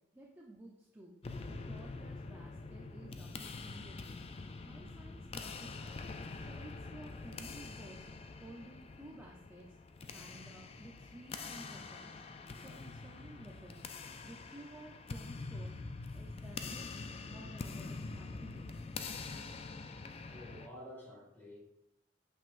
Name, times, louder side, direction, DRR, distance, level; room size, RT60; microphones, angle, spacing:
voice 1, 0.1-1.1 1.5-4.2 4.6-6.0 6.4-9.7 10.1-12.1 12.6-13.8 14.2-15.8 16.1-17.0 17.3-18.7, right 1 dB, 10° right, -3 dB, 0.6 m, -54 dB
sound 1, 1.2-20.7, left 3 dB, 30° left, 0.3 m, -45 dB
voice 2, 20.3-21.6, equal, 10° left, -4 dB, 1.9 m, -50 dB
8.8 x 5.4 x 2.5 m, 0.84 s
head